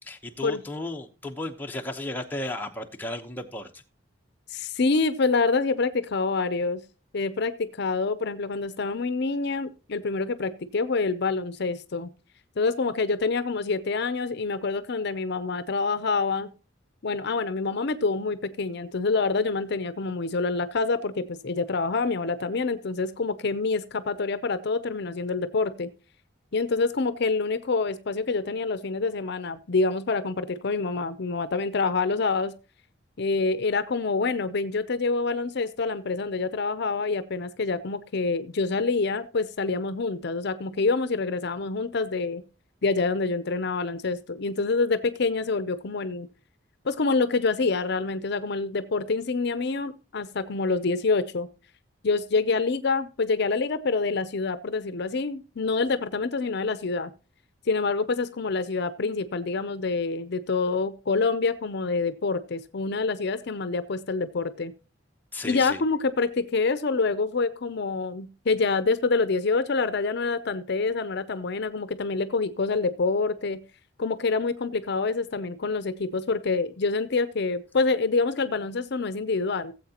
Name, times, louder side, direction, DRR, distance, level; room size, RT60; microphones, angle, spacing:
voice 1, 0.0-3.8 65.3-65.8, left 1 dB, 10° left, 0.9 m, -34 dB
voice 2, 4.5-6.8 7.1-12.1 12.6-16.5 17.0-25.9 26.5-32.5 33.2-42.4 42.8-46.3 46.8-51.5 52.0-57.1 57.7-64.7 65.4-73.6 74.0-79.7, left 4 dB, 60° left, 0.6 m, -26 dB
17.0 x 7.8 x 2.9 m
head